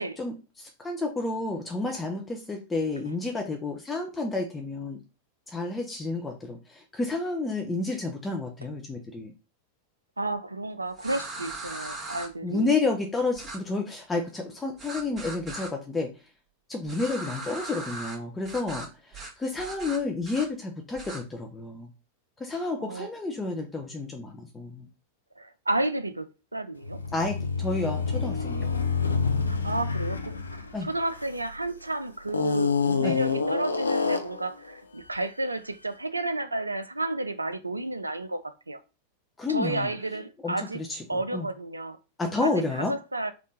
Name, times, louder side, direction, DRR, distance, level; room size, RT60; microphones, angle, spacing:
voice 1, 0.2-5.0 5.5-9.3 12.4-16.1 16.7-21.9 22.4-24.9 27.1-28.7 30.7-30.9 33.0-33.2 39.4-39.9 40.4-41.0 41.3-41.5 42.2-42.9, left 3 dB, 10° left, 0.6 m, -30 dB
voice 2, 10.2-12.7 22.8-23.1 25.4-27.0 29.5-38.8 39.5-40.8 41.1-42.0 42.4-43.3, right 2 dB, 80° right, 0.4 m, -32 dB
sound 1, 11.0-12.3 13.4-13.6 14.8-15.7 16.9-18.2 18.5-18.9 19.1-19.3 19.6-20.5 21.0-21.2, right 2 dB, 25° right, 1.5 m, -38 dB
sound 2, 26.8-31.7 32.3-34.5, left 5 dB, 75° left, 0.4 m, -27 dB
3.5 x 2.4 x 4.1 m
figure-of-eight pair, 90°, 0 cm